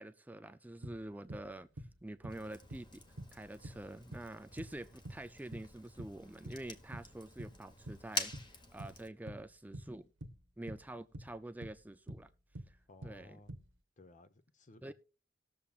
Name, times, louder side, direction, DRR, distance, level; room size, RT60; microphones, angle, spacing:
voice 1, 0.0-1.7 2.0-3.0 3.3-8.3 8.7-10.1 10.6-12.3 12.7-12.8 13.0-13.4 14.8-14.9, right 1 dB, 10° right, 0.4 m, -47 dB
sound 1, 0.8-7.1 7.4-13.7, right 1 dB, 75° right, 1.1 m, -47 dB
Fire, 2.3-9.1, left 3 dB, 25° left, 1.3 m, -47 dB
voice 2, 12.9-13.5 14.0-14.9, left 2 dB, 40° left, 0.8 m, -58 dB
19.5 x 7.1 x 2.4 m
head